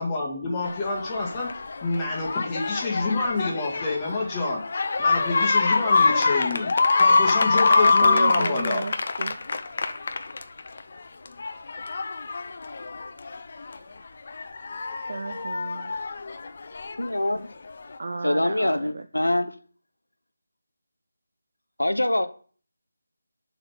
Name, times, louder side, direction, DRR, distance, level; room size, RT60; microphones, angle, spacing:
voice 1, 0.0-1.5 1.8-4.6 5.0-8.8, left 3 dB, 15° left, 2.0 m, -28 dB
sound 1, 0.6-10.8 11.3-13.8 14.3-17.1 17.9-18.0, left 4 dB, 45° left, 0.7 m, -24 dB
voice 2, 7.7-9.4 14.9-15.9 18.0-19.0, right 3 dB, 50° right, 0.5 m, -33 dB
voice 3, 17.0-17.5 18.2-19.5 21.8-22.3, left 1 dB, 85° left, 0.8 m, -24 dB
6.7 x 4.1 x 5.9 m
figure-of-eight pair, 160°, 0 cm